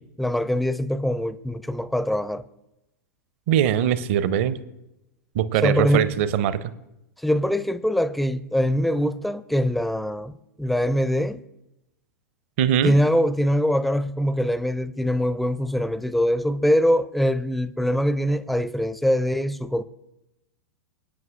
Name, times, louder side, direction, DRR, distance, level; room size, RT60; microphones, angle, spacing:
voice 1, 0.2-2.4 5.6-6.1 7.2-11.4 12.8-19.8, equal, ahead, 0.4 m, -23 dB
voice 2, 3.5-4.6 5.3-6.7 12.6-12.9, right 10 dB, 45° right, 0.7 m, -21 dB
25.0 x 9.2 x 2.5 m
figure-of-eight pair, 95°, 9 cm